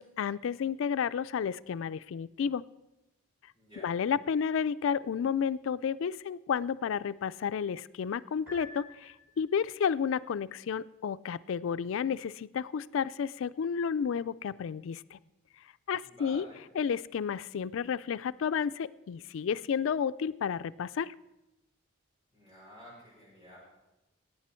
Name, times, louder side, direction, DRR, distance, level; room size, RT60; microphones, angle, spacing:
voice 1, 0.0-2.6 3.8-15.2 15.9-16.5 16.7-21.1, left 7 dB, 70° left, 16 dB, 0.3 m, -31 dB
voice 2, 3.5-3.9 16.0-16.6 22.3-23.6, left 1 dB, 30° right, -7 dB, 5.7 m, -51 dB
Piano, 8.5-9.7, left 1 dB, 10° right, 3.9 m, -49 dB
16.5 x 9.0 x 4.4 m, 0.96 s
head